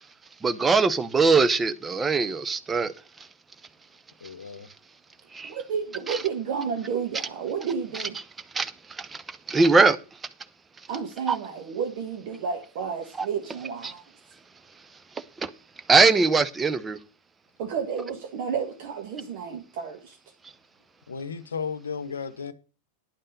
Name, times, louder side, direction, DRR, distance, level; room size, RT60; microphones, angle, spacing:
voice 1, 0.4-2.9 6.1-6.2 8.6-8.7 9.5-10.0 11.3-11.4 13.2-13.3 15.9-17.0, right 4 dB, 15° right, 0.7 m, -20 dB
voice 2, 4.2-4.7 21.1-22.5, left 6 dB, 70° left, 0.8 m, -34 dB
voice 3, 5.4-8.2 10.9-14.0 17.6-20.2, right 6 dB, 50° right, 1.2 m, -31 dB
10.5 x 5.5 x 6.5 m
figure-of-eight pair, 90°, 0 cm